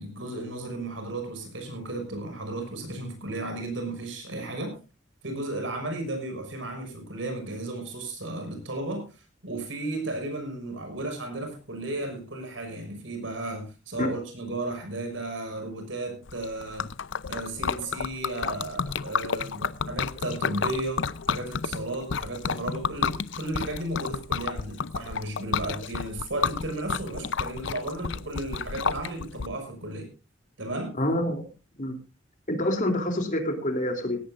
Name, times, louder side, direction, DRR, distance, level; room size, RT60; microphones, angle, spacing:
voice 1, 0.0-4.8 5.2-16.9 17.3-30.1 30.6-30.9, right 2 dB, 65° right, 5 dB, 6.2 m, -34 dB
Liquid, 16.3-29.5, left 6 dB, 65° left, 0.6 m, -31 dB
voice 2, 31.0-31.4 31.8-31.9 32.5-34.2, left 1 dB, 40° left, 4 dB, 3.2 m, -26 dB
17.5 x 16.5 x 2.6 m, 0.31 s
head